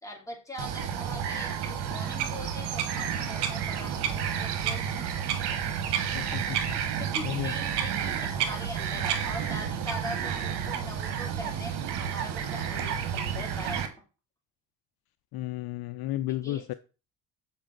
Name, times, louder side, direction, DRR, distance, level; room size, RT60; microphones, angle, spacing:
voice 1, 0.0-5.1 6.6-13.8 16.3-16.8, left 1 dB, 10° left, 2.9 m, -42 dB
Bird vocalization bird call bird song, 0.6-13.9, right 8 dB, 75° right, 1.2 m, -30 dB
voice 2, 6.1-6.6 7.2-7.5 15.3-16.7, left 14 dB, 60° left, 0.5 m, -33 dB
7.3 x 4.5 x 3.9 m
supercardioid pair, 85°, 41 cm